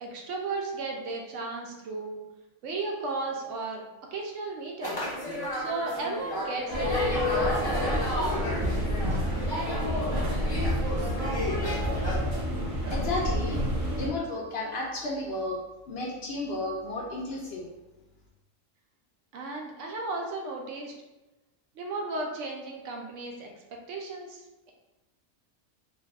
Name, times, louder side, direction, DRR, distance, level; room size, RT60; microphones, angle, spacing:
voice 1, 0.0-2.2 2.6-3.8 4.1-5.1 5.5-8.0 19.3-20.9 21.8-23.5 23.9-24.7, right 3 dB, 75° right, 1 dB, 0.9 m, -35 dB
sound 1, 4.8-12.1, left 1 dB, 30° left, 0.5 m, -32 dB
sound 2, 6.7-14.1, equal, 45° right, 0.4 m, -29 dB
voice 2, 12.9-13.6 13.9-15.6 15.9-17.6, left 2 dB, 65° left, -2 dB, 0.7 m, -32 dB
2.6 x 2.2 x 3.4 m, 1.1 s
omnidirectional pair, 1.3 m